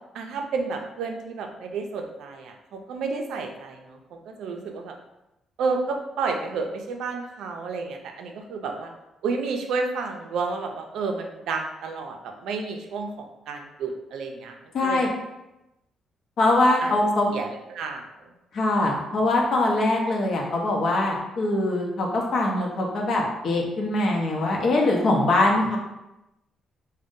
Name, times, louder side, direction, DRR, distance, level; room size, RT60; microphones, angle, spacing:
voice 1, 0.1-4.0 4.3-4.9 5.6-8.9 9.2-14.6 14.8-15.0 16.8-16.9 17.3-18.0, right 4 dB, 80° right, 3 dB, 0.4 m, -31 dB
voice 2, 14.7-15.1 16.4-17.3 18.5-25.8, left 2 dB, 60° left, -1 dB, 0.7 m, -22 dB
2.5 x 2.1 x 3.6 m, 0.94 s
cardioid pair, 90°, 0 cm